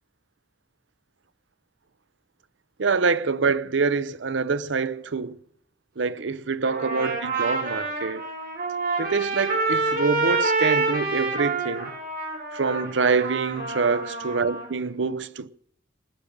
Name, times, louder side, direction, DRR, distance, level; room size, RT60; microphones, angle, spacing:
voice 1, 2.8-5.4 6.0-8.2 9.0-11.9 12.5-15.5, right 4 dB, 75° right, 0.7 m, -25 dB
Trumpet, 6.6-14.7, right 3 dB, 55° right, 5.7 m, -27 dB
19.5 x 6.7 x 10.0 m
head